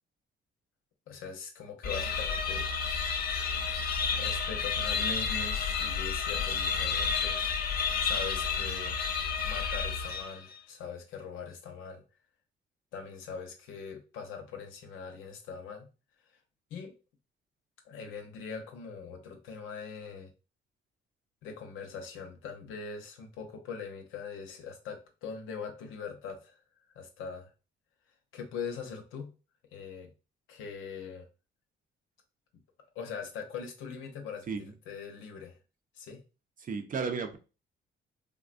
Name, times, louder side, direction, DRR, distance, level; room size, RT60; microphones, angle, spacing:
voice 1, 1.1-2.7 3.3-3.4 4.1-9.0 9.4-12.0 12.9-15.9 16.7-16.9 17.8-20.3 21.4-27.5 28.3-29.3 29.7-30.1 30.5-31.2 32.9-35.6 35.9-36.2, left 6 dB, 90° left, 3 dB, 0.8 m, -42 dB
sound 1, 1.8-10.5, left 6 dB, 50° left, 0.6 m, -31 dB
voice 2, 36.6-37.4, right 5 dB, 45° right, 6 dB, 0.6 m, -33 dB
3.5 x 2.2 x 2.5 m, 0.32 s
cardioid pair, 90°, 20 cm